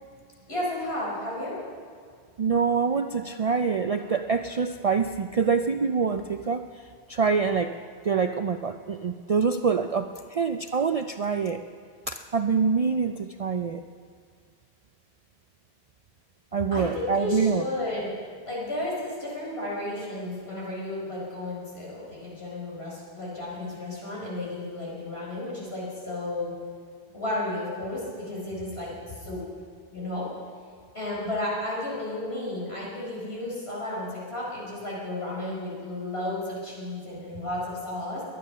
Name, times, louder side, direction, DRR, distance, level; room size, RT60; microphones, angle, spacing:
voice 1, 0.5-1.6 16.7-18.1 18.5-26.5 27.1-29.4 29.9-30.3 30.9-38.2, left 1 dB, 70° left, -5 dB, 5.0 m, -33 dB
voice 2, 2.4-6.6 7.1-7.8 8.0-11.6 12.1-13.8 16.5-17.6, right 5 dB, 50° right, 8 dB, 0.4 m, -25 dB
22.5 x 9.5 x 5.7 m, 2.1 s
omnidirectional pair, 1.1 m